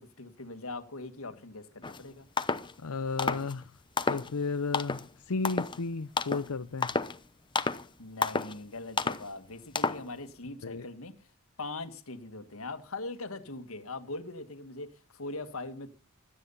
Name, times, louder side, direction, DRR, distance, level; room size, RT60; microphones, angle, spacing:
voice 1, 0.0-2.3 8.0-11.3 11.6-15.9, left 2 dB, 70° left, 1.7 m, -41 dB
sound 1, 1.8-2.0 2.4-2.7 3.2-3.5 4.0-4.3 4.7-5.1 5.4-5.8 6.2-6.5 6.8-7.2 7.5-7.8 8.2-8.6 9.0-9.2 9.7-10.1, left 4 dB, 20° left, 0.9 m, -30 dB
voice 2, 2.8-3.7 4.1-7.0 10.6-10.9, left 4 dB, 90° left, 0.8 m, -33 dB
17.0 x 13.0 x 5.5 m
head